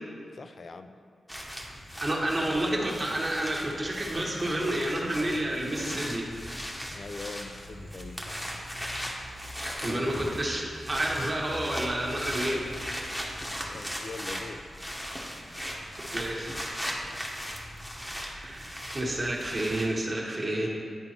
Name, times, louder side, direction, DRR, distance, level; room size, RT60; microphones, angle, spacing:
voice 1, 0.3-0.9 6.9-8.4 13.3-14.6, left 3 dB, 55° left, 9 dB, 0.4 m, -42 dB
sound 1, 1.3-19.9, equal, 10° left, 1.0 m, -38 dB
voice 2, 2.0-6.3 9.8-12.6 16.1-16.6 18.3-18.7 18.9-20.7, right 1 dB, 35° right, -2 dB, 1.3 m, -29 dB
10.5 x 3.8 x 2.9 m, 2.2 s
cardioid pair, 65°, 0 cm